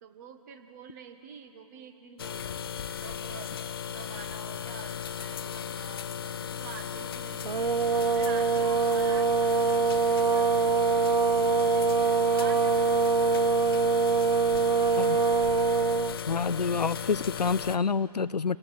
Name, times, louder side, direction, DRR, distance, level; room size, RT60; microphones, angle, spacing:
voice 1, 0.0-3.6 3.9-11.9 12.3-13.4, right 6 dB, 25° right, 7 dB, 1.5 m, -47 dB
sound 1, 2.2-17.8, left 8 dB, 35° left, 0.7 m, -36 dB
Train / Engine / Alarm, 6.2-14.5, right 2 dB, 70° right, 2.6 m, -54 dB
sound 2, 7.4-16.2, right 5 dB, 90° right, 0.5 m, -24 dB
voice 2, 16.3-18.6, left 5 dB, 85° left, 17 dB, 0.6 m, -27 dB
28.0 x 18.0 x 9.1 m, 2.9 s
figure-of-eight pair, 150°, 20 cm